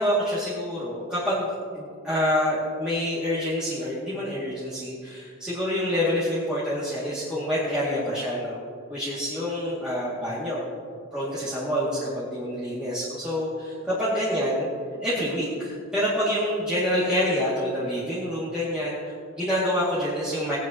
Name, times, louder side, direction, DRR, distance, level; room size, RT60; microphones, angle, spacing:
voice 1, 0.0-1.5 1.7-8.6 8.9-10.6 11.1-14.7 15.0-20.6, equal, 5° right, -11 dB, 2.1 m, -27 dB
18.0 x 9.5 x 2.9 m, 2.2 s
head